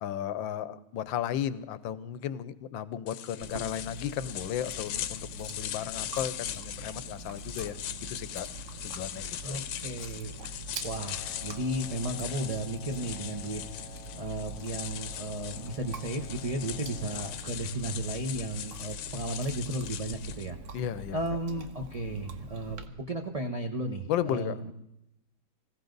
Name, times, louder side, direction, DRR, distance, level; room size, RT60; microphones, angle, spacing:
voice 1, 0.0-7.8 8.1-8.5 8.8-9.6 20.7-21.2 21.5-21.6 24.1-24.7, left 10 dB, 70° left, 16 dB, 1.4 m, -34 dB
sound 1, 3.1-20.5, left 11 dB, 90° left, 1.6 m, -40 dB
Chewing mastication, 3.4-22.9, right 3 dB, 50° right, 1.0 m, -44 dB
voice 2, 9.4-20.6 21.1-24.7, right 1 dB, 30° right, 3 dB, 0.6 m, -34 dB
Wind instrument woodwind instrument, 11.0-17.5, left 5 dB, 20° left, 1.2 m, -52 dB
19.5 x 16.5 x 4.0 m, 0.84 s
omnidirectional pair, 2.3 m